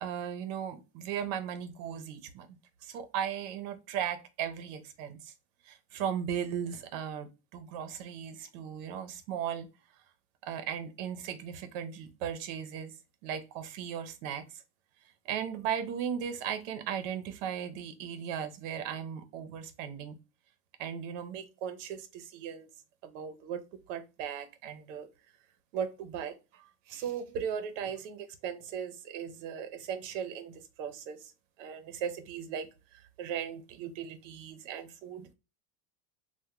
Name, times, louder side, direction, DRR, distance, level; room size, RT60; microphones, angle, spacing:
voice 1, 0.0-2.6 2.8-5.3 5.6-9.7 10.5-13.0 13.2-14.6 15.3-20.2 20.8-22.7 23.0-23.6 23.9-25.1 25.7-31.3 31.6-32.7 33.2-35.3, right 8 dB, 50° right, 0.7 m, -37 dB
3.4 x 2.2 x 2.9 m
supercardioid pair, 170°, 50 cm